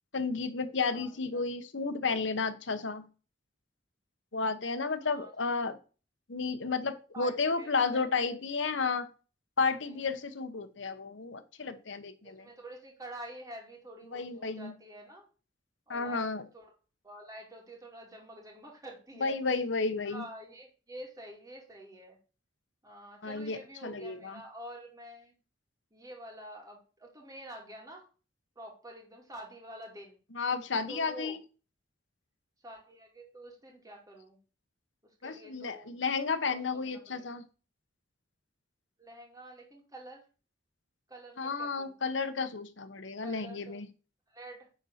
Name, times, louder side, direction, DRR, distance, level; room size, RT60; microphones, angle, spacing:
voice 1, 0.1-3.1 4.3-5.8 6.3-9.1 9.6-12.4 14.1-14.7 15.9-16.4 19.2-20.2 23.2-24.4 30.3-31.4 35.2-37.4 41.4-43.9, left 4 dB, 70° left, 10 dB, 1.0 m, -32 dB
voice 2, 0.8-1.4 5.0-5.3 7.1-8.3 9.8-10.2 12.2-15.3 15.9-16.3 16.5-16.7 17.0-19.4 20.0-22.2 22.8-25.3 25.9-28.0 28.6-30.2 30.9-31.4 32.6-34.4 35.2-35.9 36.5-37.3 39.0-40.2 41.1-41.9 43.2-43.8 44.3-44.7, right 1 dB, 20° right, 0 dB, 2.4 m, -48 dB
9.8 x 4.1 x 6.4 m, 0.36 s
head